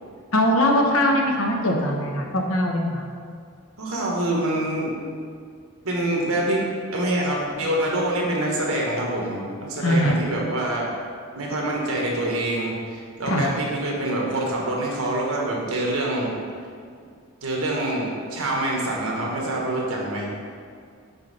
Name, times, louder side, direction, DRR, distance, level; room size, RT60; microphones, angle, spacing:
voice 1, 0.3-3.0 9.8-10.2 13.2-13.5, left 1 dB, 70° left, 1 dB, 0.9 m, -21 dB
voice 2, 3.8-4.9 5.8-10.9 11.3-16.3 17.4-20.3, right 1 dB, 75° right, -2 dB, 1.4 m, -25 dB
6.0 x 5.5 x 4.2 m, 2.2 s
head